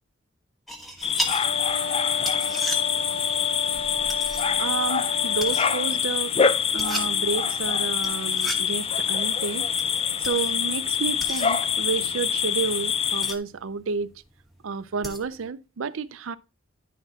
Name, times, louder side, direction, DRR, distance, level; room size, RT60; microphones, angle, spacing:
sound 1, 0.7-15.5, equal, ahead, 1.3 m, -38 dB
sound 2, 1.0-13.4, left 7 dB, 30° left, 0.5 m, -25 dB
Wind instrument woodwind instrument, 1.4-6.1, left 4 dB, 60° left, 1.3 m, -34 dB
voice 1, 4.6-6.3 6.7-9.7 10.2-14.1 14.6-16.4, right 5 dB, 85° right, 0.5 m, -30 dB
11.0 x 4.1 x 3.9 m
head